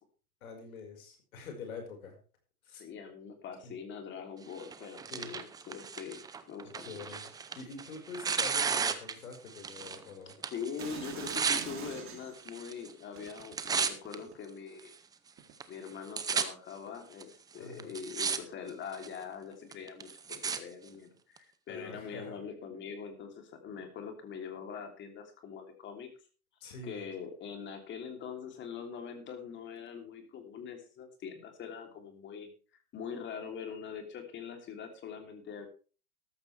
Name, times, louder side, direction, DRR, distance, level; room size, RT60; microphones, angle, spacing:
voice 1, 0.4-2.2 2.6-2.8 3.6-3.7 5.1-5.3 6.6-7.2 7.6-10.4 17.6-17.9 21.7-22.4 26.6-27.0, left 4 dB, 70° left, 4 dB, 5.2 m, -45 dB
voice 2, 2.7-7.0 10.5-14.9 15.7-26.1 26.8-32.5 32.9-35.7, left 6 dB, 25° left, 5 dB, 3.2 m, -43 dB
Tearing, 4.6-10.0 10.3-11.7 12.4-12.9 13.2-14.1 14.8-14.9 15.6-15.7 15.9-16.4 17.2-17.3 17.8-18.4 18.7-19.2 19.7-20.6 21.4-21.5, right 6 dB, 10° right, 0.7 m, -34 dB
sound 1, 10.8-12.5 13.2-14.6 15.4-15.5, right 8 dB, 30° right, 3.2 m, -44 dB
14.0 x 12.5 x 3.4 m, 0.37 s
hypercardioid pair, 130°, 44 cm